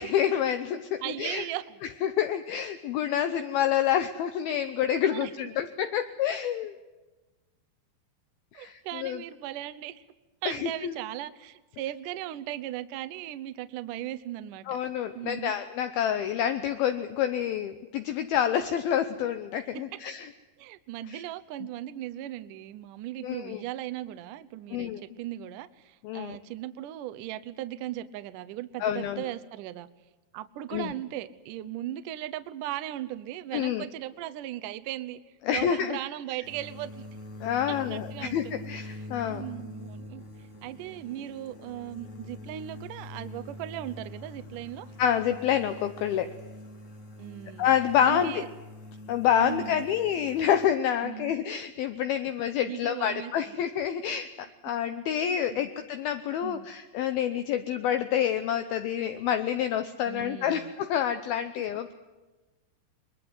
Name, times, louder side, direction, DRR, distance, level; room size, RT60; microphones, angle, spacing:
voice 1, 0.0-1.5 2.0-6.7 8.5-9.2 10.5-10.9 14.7-20.3 21.1-21.2 23.2-23.6 24.7-25.0 26.0-26.4 28.8-29.2 30.7-30.9 33.5-33.9 35.5-36.0 37.4-39.5 45.0-46.3 47.6-48.4 49.1-61.9, left 9 dB, 75° left, 9 dB, 2.5 m, -28 dB
voice 2, 1.0-1.8 5.1-5.3 8.5-10.0 10.4-14.8 15.1-15.5 19.7-20.0 20.6-24.9 25.2-29.9 30.3-35.2 35.5-37.1 37.7-40.2 40.6-44.9 47.2-47.7 48.1-48.5 49.4-49.9 51.0-51.3 52.6-53.6 55.5-55.7 56.4-56.7 60.1-60.7, right 13 dB, 75° right, 12 dB, 1.9 m, -38 dB
sound 1, 36.4-50.7, left 1 dB, 35° left, 1.3 m, -44 dB
22.5 x 22.0 x 8.0 m, 1.2 s
omnidirectional pair, 4.9 m